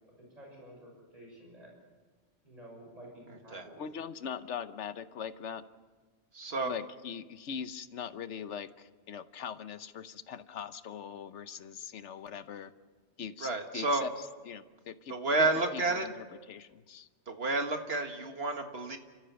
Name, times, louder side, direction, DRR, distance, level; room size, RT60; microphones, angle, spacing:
voice 1, 0.1-1.7 2.4-3.8, right 1 dB, 35° right, -1 dB, 6.3 m, -51 dB
voice 2, 3.8-5.6 6.7-12.7 13.2-14.1 14.5-15.5 15.7-17.1, left 7 dB, 75° left, 12 dB, 1.2 m, -41 dB
voice 3, 6.3-6.7 13.4-14.1 15.1-16.1 17.3-19.0, right 3 dB, 60° right, 5 dB, 2.0 m, -30 dB
30.0 x 14.0 x 6.9 m, 1.4 s
omnidirectional pair, 1.2 m